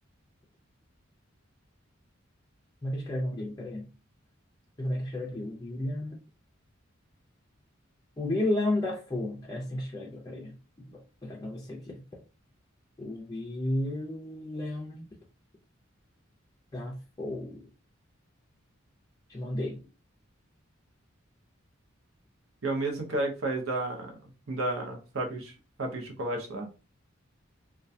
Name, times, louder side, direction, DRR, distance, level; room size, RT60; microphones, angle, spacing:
voice 1, 2.8-3.9 4.8-6.2 8.2-10.6 10.8-12.0 13.0-15.1 16.7-17.6 19.3-19.8, left 1 dB, 20° left, 0.4 m, -33 dB
voice 2, 22.6-24.2 24.5-25.5 25.8-26.7, right 2 dB, 80° right, 0.7 m, -32 dB
2.3 x 2.2 x 2.6 m
head